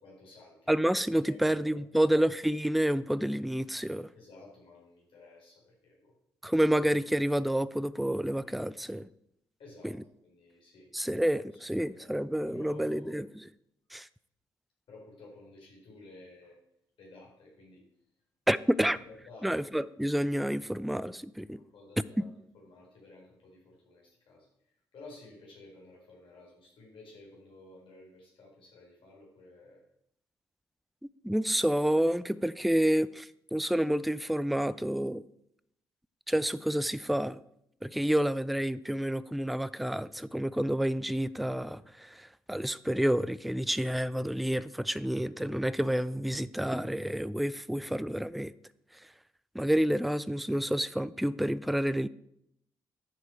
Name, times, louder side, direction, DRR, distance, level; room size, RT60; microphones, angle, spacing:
voice 1, 0.0-0.7 1.3-2.0 4.1-6.1 9.6-10.9 11.7-12.1 12.4-13.2 14.9-16.6 17.0-17.8 19.0-19.5 21.5-24.5 24.9-29.8, left 2 dB, 60° left, 4.6 m, -53 dB
voice 2, 0.7-4.1 6.4-9.1 9.8-9.9 10.9-13.3 13.9-14.1 18.5-19.0 19.4-21.6 31.2-35.2 36.3-37.4 37.8-48.5 49.5-52.1, right 1 dB, ahead, 0.4 m, -29 dB
9.9 x 7.3 x 4.6 m
figure-of-eight pair, 40°, 10 cm